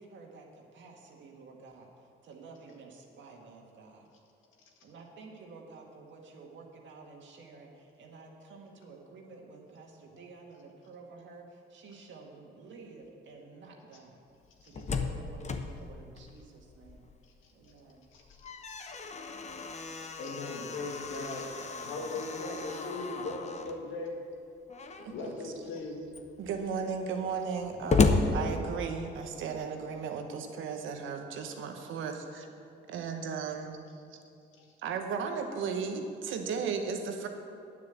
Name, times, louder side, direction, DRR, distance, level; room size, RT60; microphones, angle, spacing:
voice 1, 0.0-4.1 4.8-14.2 14.6-17.1 17.5-18.1, right 4 dB, 70° right, 1 dB, 1.9 m, -51 dB
Slam, 14.5-17.3 17.6-17.7 18.1-23.8 24.7-25.2 25.8-25.9 26.1-29.2, left 4 dB, 35° left, 0.9 m, -33 dB
voice 2, 18.1-19.0 19.9-21.5 21.8-24.2 25.1-26.0 29.3-29.5 34.6-34.7, left 2 dB, 80° left, 0 dB, 2.0 m, -39 dB
voice 3, 25.0-25.6 26.4-32.5 32.9-33.8 34.8-37.3, right 6 dB, 85° right, 5 dB, 1.2 m, -35 dB
9.7 x 7.3 x 8.1 m, 2.5 s
cardioid pair, 90°, 20 cm